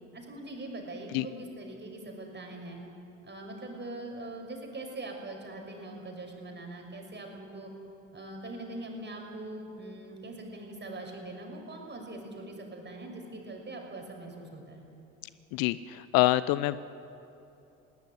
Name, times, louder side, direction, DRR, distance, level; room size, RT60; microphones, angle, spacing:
voice 1, 0.1-2.8 3.2-7.7 8.1-14.8, right 2 dB, 25° right, 2 dB, 6.3 m, -42 dB
voice 2, 15.5-16.8, left 17 dB, 55° left, 17 dB, 0.7 m, -26 dB
21.5 x 18.0 x 9.5 m, 2.9 s
hypercardioid pair, 60°, 40 cm